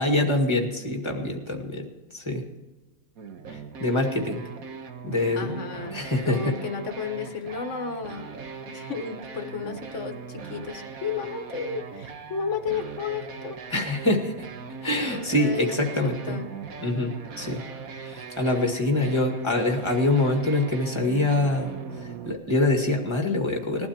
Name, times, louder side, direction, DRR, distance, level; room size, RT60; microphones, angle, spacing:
voice 1, 0.0-2.4 3.5-4.4 5.0-5.5 5.9-6.6 13.7-14.3 14.8-16.4 16.8-17.6 18.0-23.9, left 2 dB, 20° left, 2 dB, 2.0 m, -25 dB
sound 1, 3.2-22.4, right 5 dB, 70° right, 1.6 m, -40 dB
voice 2, 5.3-6.0 6.2-8.3 8.6-13.6 15.1-15.8 16.3-16.5, left 5 dB, 55° left, 6 dB, 1.6 m, -33 dB
20.5 x 12.0 x 2.9 m, 1.2 s
omnidirectional pair, 1.5 m